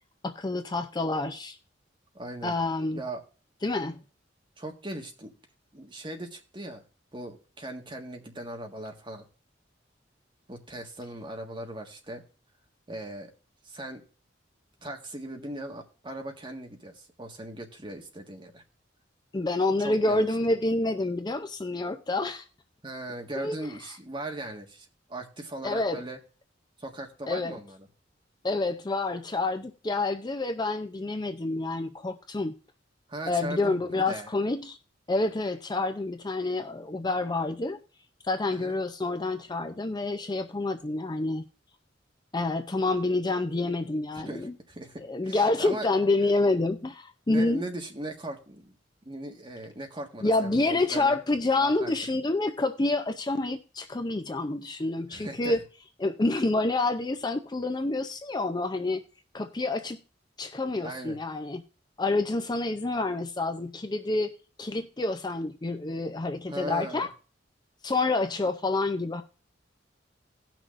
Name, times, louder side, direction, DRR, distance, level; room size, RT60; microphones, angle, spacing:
voice 1, 0.2-1.6 2.4-3.0 3.6-4.0 19.3-22.5 23.4-23.6 25.6-26.0 27.3-27.6 28.4-32.5 33.2-34.8 35.1-37.8 38.2-41.4 42.3-44.6 45.1-47.6 50.2-55.6 56.0-59.0 59.3-60.0 60.4-61.6 62.0-64.3 64.6-67.1 67.8-69.2, left 2 dB, 20° left, 0.5 m, -28 dB
voice 2, 2.1-2.5 2.9-3.2 4.6-5.3 5.7-6.8 7.1-9.2 10.5-12.2 12.9-13.3 13.6-14.0 14.8-18.6 19.8-20.3 22.8-26.2 26.8-27.8 33.1-34.3 38.5-38.7 44.1-45.9 47.3-48.8 49.0-51.2 51.6-52.1 55.1-55.6 60.8-61.2 66.5-67.1, right 1 dB, 25° right, 1.6 m, -39 dB
18.0 x 6.1 x 2.5 m
head